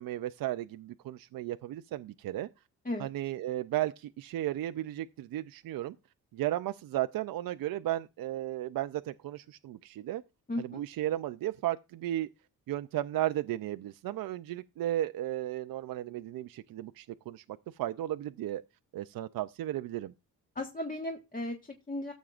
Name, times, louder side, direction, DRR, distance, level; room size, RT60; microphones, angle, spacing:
voice 1, 0.0-2.5 3.0-6.0 6.3-10.2 10.6-12.3 12.7-18.6 18.9-20.1, right 13 dB, 70° right, 0.5 m, -34 dB
voice 2, 10.5-10.8 20.5-22.1, left 1 dB, 25° left, 1.4 m, -36 dB
14.5 x 7.3 x 2.4 m
cardioid pair, 100°, 36 cm